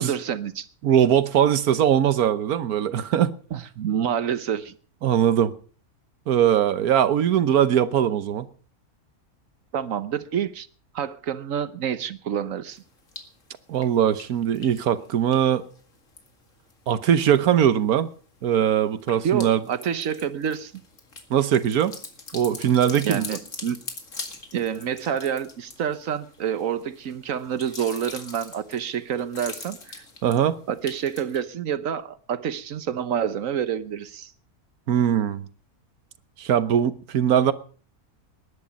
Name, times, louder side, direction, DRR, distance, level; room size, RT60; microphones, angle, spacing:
voice 1, 0.0-0.7 3.5-4.7 9.7-10.7 10.9-12.8 19.2-20.8 23.0-23.8 24.5-30.0 30.7-34.3, right 8 dB, 65° right, 1.3 m, -28 dB
voice 2, 0.8-3.3 5.0-5.5 6.3-8.5 13.7-15.6 16.9-18.1 18.4-19.6 21.3-21.9 22.3-23.2 30.2-30.6 34.9-35.4 36.4-37.5, right 9 dB, 85° right, 1.4 m, -21 dB
sound 1, 12.8-13.4 13.7-16.7 17.1-17.6 18.0-31.4, left 4 dB, 60° left, 2.5 m, -42 dB
20.0 x 10.5 x 5.2 m
omnidirectional pair, 1.5 m